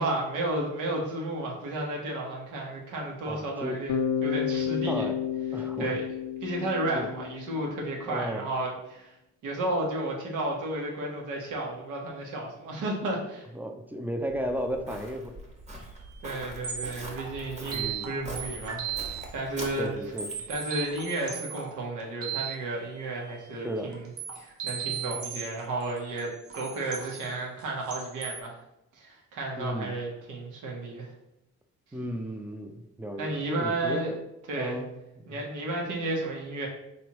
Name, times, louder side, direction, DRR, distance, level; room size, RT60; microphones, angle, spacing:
voice 1, 0.0-5.1 5.8-6.0 6.4-9.1 9.4-13.5 16.2-19.0 19.3-19.9 20.5-24.1 24.4-28.6 29.0-31.1 33.2-34.1 34.5-34.8 35.3-36.7, right 2 dB, 85° right, -1 dB, 1.1 m, -32 dB
voice 2, 3.3-3.8 4.8-5.2 5.5-6.0 6.9-7.1 8.0-8.5 13.5-15.4 17.7-18.1 19.8-20.3 23.6-24.0 29.6-29.9 31.9-34.2 34.5-34.9 35.2-35.5, equal, 5° right, 4 dB, 0.5 m, -34 dB
Bass guitar, 3.9-7.9, left 8 dB, 70° left, 0.5 m, -31 dB
Walk footsteps, 14.3-20.5, right 1 dB, 25° right, 1.1 m, -43 dB
sound 1, 15.8-15.9 16.3-16.4 16.6-19.3 19.6-22.5 23.9-28.4, right 8 dB, 50° right, 0.8 m, -37 dB
4.3 x 3.2 x 3.0 m, 0.86 s
cardioid pair, 90°, 30 cm